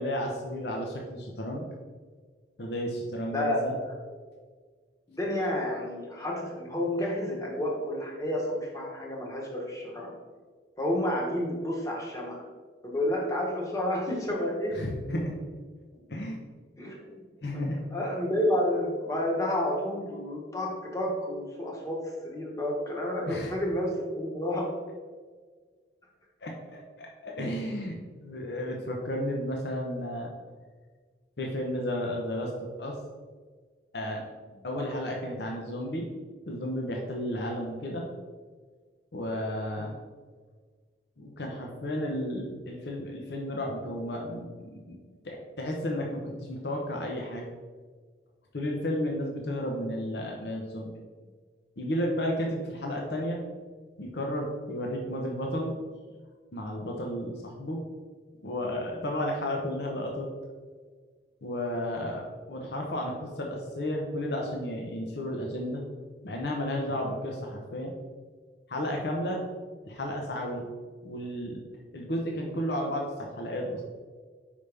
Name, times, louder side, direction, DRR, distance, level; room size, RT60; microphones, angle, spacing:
voice 1, 0.0-1.6 2.6-3.7 14.7-15.3 16.1-16.4 17.4-17.8 23.3-23.5 26.4-30.3 31.4-32.5 32.8-33.0 33.9-34.2 34.5-36.1 36.5-38.1 39.1-39.9 41.2-45.0 45.2-47.4 48.5-50.9 51.8-53.4 54.0-55.8 56.5-57.8 58.4-60.3 61.4-65.8 66.2-67.9 68.7-69.5 69.8-70.7 71.0-71.6 71.9-73.8, equal, 65° left, 0 dB, 0.8 m, -33 dB
voice 2, 3.3-3.9 5.1-10.1 10.8-12.4 12.8-14.8 16.8-17.2 17.5-17.6 17.9-24.8 39.8-39.9 69.2-69.3, left 1 dB, 20° left, -2 dB, 1.1 m, -30 dB
5.4 x 5.1 x 3.4 m, 1.5 s
head